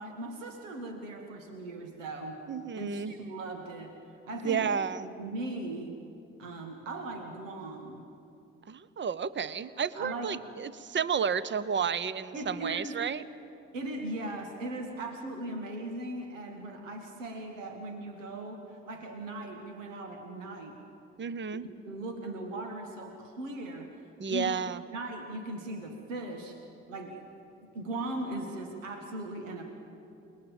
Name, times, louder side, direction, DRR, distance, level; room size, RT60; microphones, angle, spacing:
voice 1, 0.0-2.4 2.7-4.0 4.3-4.7 5.0-6.0 6.4-8.1 10.0-10.4 12.3-13.0 13.7-20.8 21.9-24.0 24.3-26.6 26.9-27.2 27.6-29.6, right 2 dB, 80° right, 4 dB, 1.7 m, -38 dB
voice 2, 2.5-3.1 4.4-5.1 8.7-13.2 21.2-21.6 24.2-24.8, right 6 dB, 30° right, 17 dB, 0.9 m, -31 dB
29.0 x 20.0 x 7.3 m, 2.7 s
figure-of-eight pair, 40°, 38 cm